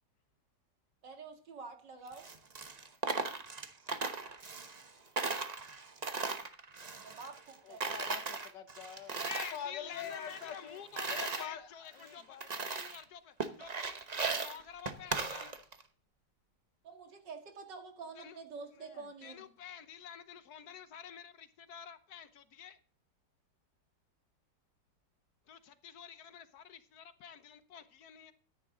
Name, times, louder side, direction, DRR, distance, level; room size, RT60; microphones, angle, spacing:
voice 1, 1.0-2.3 7.0-7.9 16.8-19.4, right 4 dB, 85° right, 2.7 m, -48 dB
Coin (dropping), 2.1-4.9 5.2-7.5 7.8-9.6 9.9-11.5 12.0-12.1 12.4-13.0 13.4-15.8, right 4 dB, 30° right, 0.8 m, -38 dB
voice 2, 7.6-9.2 9.5-10.8 11.1-12.9 18.8-19.4, left 9 dB, 90° left, 1.8 m, -46 dB
voice 3, 9.2-12.4 12.7-13.7 14.2-15.6 18.1-18.4 19.2-22.8 25.5-28.3, left 8 dB, 65° left, 1.4 m, -49 dB
13.0 x 10.0 x 3.8 m
omnidirectional pair, 1.9 m